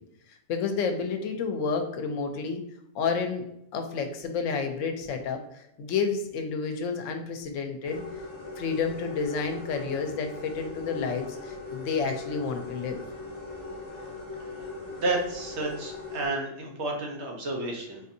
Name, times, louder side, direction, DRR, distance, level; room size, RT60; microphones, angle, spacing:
voice 1, 0.5-2.6 2.9-3.4 3.7-8.0 8.6-13.0, left 5 dB, 80° left, 5 dB, 0.9 m, -30 dB
sound 1, 7.8-16.3, left 3 dB, 25° left, 0.8 m, -40 dB
voice 2, 14.9-18.0, right 2 dB, 65° right, 0 dB, 1.1 m, -31 dB
4.0 x 2.7 x 2.5 m, 0.79 s
omnidirectional pair, 1.3 m